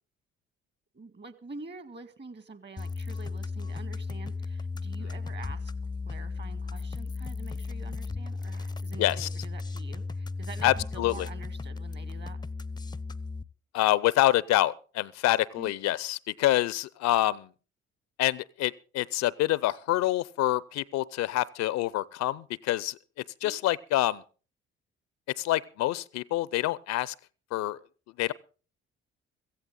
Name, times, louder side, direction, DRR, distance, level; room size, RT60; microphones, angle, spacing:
voice 1, 0.9-5.7 6.1-12.4 15.6-15.7 23.4-23.6, right 4 dB, 35° right, 2.0 m, -46 dB
sound 1, 2.8-13.4, left 3 dB, 15° left, 0.6 m, -35 dB
voice 2, 9.0-9.3 10.6-11.3 13.7-17.5 18.2-23.0 23.4-24.2 25.4-27.1 27.5-27.8 28.2-28.3, left 15 dB, 60° left, 0.6 m, -26 dB
16.5 x 15.0 x 3.8 m
hypercardioid pair, 50°, 30 cm